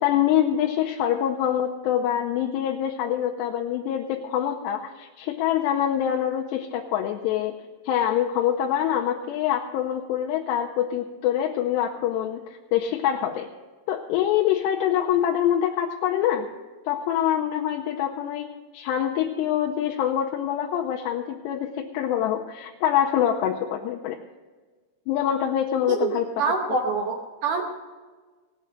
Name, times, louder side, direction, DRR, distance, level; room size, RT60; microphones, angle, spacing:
voice 1, 0.0-7.6 7.9-13.5 13.9-16.5 16.9-18.5 18.7-24.2 25.1-26.3, left 10 dB, 85° left, 2 dB, 2.8 m, -25 dB
voice 2, 25.9-27.7, right 4 dB, 70° right, 2 dB, 2.0 m, -26 dB
18.0 x 7.9 x 6.4 m, 1.4 s
omnidirectional pair, 5.0 m